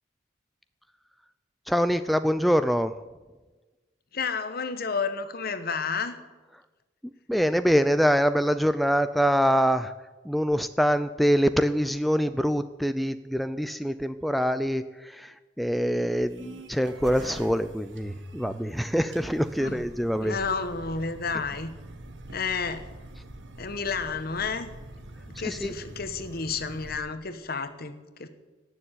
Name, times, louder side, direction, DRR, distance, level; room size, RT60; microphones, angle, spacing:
voice 1, 1.7-2.9 7.3-9.9 10.2-20.4 25.4-25.7, equal, ahead, 10 dB, 0.3 m, -25 dB
voice 2, 4.1-6.2 19.6-19.8 20.2-21.7 22.3-22.9 23.6-24.7 25.3-27.9 28.2-28.3, left 5 dB, 55° left, 10 dB, 1.2 m, -31 dB
sound 1, 16.1-27.0, right 2 dB, 75° right, 1.6 m, -44 dB
18.0 x 6.9 x 9.0 m, 1.2 s
head